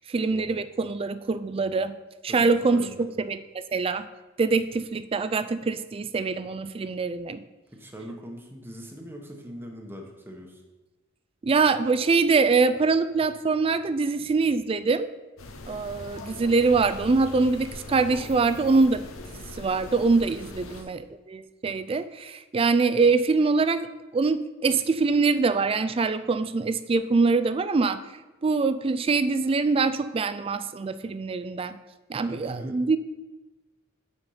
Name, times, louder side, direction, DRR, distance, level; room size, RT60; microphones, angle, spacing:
voice 1, 0.1-1.9 2.2-2.8 3.2-3.4 3.7-4.1 4.4-7.4 11.4-15.1 15.7-19.0 19.6-23.9 24.1-28.0 28.4-31.8 32.1-33.0, right 4 dB, 25° right, 12 dB, 0.3 m, -24 dB
voice 2, 2.3-3.1 7.7-10.6 20.4-20.9 32.2-32.8, equal, 10° right, 2 dB, 1.0 m, -42 dB
sound 1, 15.4-20.8, left 2 dB, 80° left, 0.9 m, -41 dB
8.6 x 4.4 x 5.5 m, 1.1 s
head